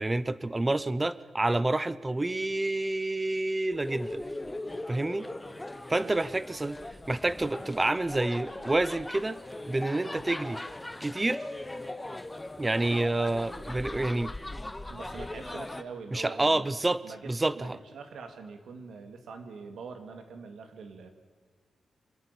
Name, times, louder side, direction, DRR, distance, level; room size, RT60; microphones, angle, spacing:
voice 1, 0.0-4.2 4.9-5.3 5.9-6.8 7.1-9.4 9.7-10.6 11.0-11.4 12.6-14.3 16.1-17.8, right 2 dB, 15° right, 17 dB, 0.7 m, -28 dB
sound 1, 3.7-15.8, left 1 dB, 10° left, 0.9 m, -39 dB
voice 2, 14.9-16.7 17.0-21.1, right 5 dB, 80° right, 7 dB, 2.6 m, -44 dB
26.0 x 11.0 x 10.0 m, 1.5 s
wide cardioid pair, 130°, 0 cm